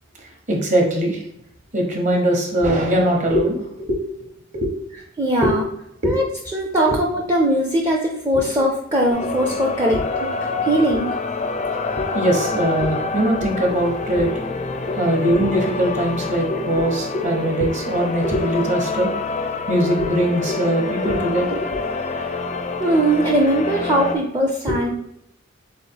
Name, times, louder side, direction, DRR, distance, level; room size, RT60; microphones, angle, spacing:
voice 1, 0.5-1.2 1.7-3.9 4.5-4.7 5.4-5.5 6.0-6.1 6.9-7.0 9.9-10.0 11.6-11.7 12.1-14.3 14.9-19.1 19.7-21.7 22.2-22.4 24.6-24.8, right 1 dB, 40° right, 1 dB, 1.0 m, -21 dB
voice 2, 5.2-5.6 6.0-6.2 6.5-10.3 10.6-11.1 22.8-24.9, right 1 dB, 20° right, -1 dB, 0.5 m, -20 dB
sound 1, 9.1-24.1, left 3 dB, 35° left, 0.4 m, -27 dB
3.5 x 3.2 x 4.5 m, 0.76 s
head